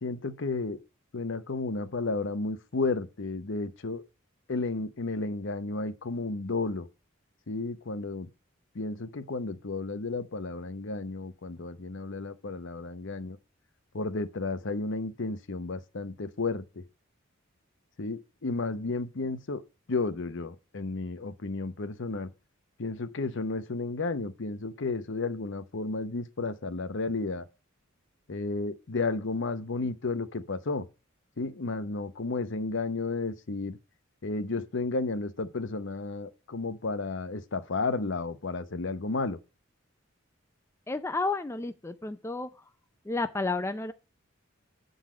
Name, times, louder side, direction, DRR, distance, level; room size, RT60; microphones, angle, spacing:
voice 1, 0.0-0.8 1.1-4.0 4.5-6.9 7.5-8.3 8.7-13.4 13.9-16.8 18.0-19.6 19.9-22.3 22.8-27.5 28.3-30.9 31.4-33.8 34.2-39.4, left 3 dB, 60° left, 0.8 m, -32 dB
voice 2, 40.9-42.5 43.0-43.9, left 3 dB, 15° left, 0.4 m, -31 dB
8.8 x 4.0 x 6.1 m
head